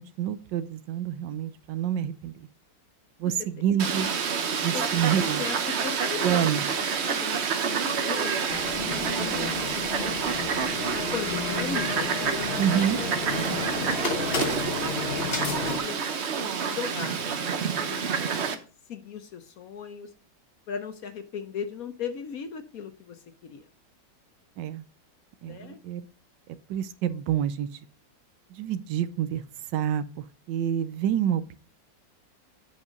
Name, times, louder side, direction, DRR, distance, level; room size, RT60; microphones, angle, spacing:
voice 1, 0.0-2.5 3.2-4.1 4.6-5.5 6.2-6.6 12.6-13.0 24.6-24.8 25.4-26.0 26.7-27.8 28.5-29.4 29.7-31.5, right 9 dB, 80° right, 14 dB, 1.3 m, -28 dB
Fowl, 3.8-18.6, right 6 dB, 50° right, 0.8 m, -28 dB
voice 2, 4.5-4.9 5.4-8.4 9.2-9.4 9.7-9.8 10.2-10.6 10.9-12.5 13.4-14.0 15.2-18.6 18.9-20.1 20.7-23.6 25.4-25.8, left 7 dB, 60° left, 9 dB, 1.1 m, -38 dB
sound 1, 8.5-15.8, left 4 dB, 35° left, 1.2 m, -32 dB
8.2 x 5.5 x 5.1 m, 0.37 s
omnidirectional pair, 2.0 m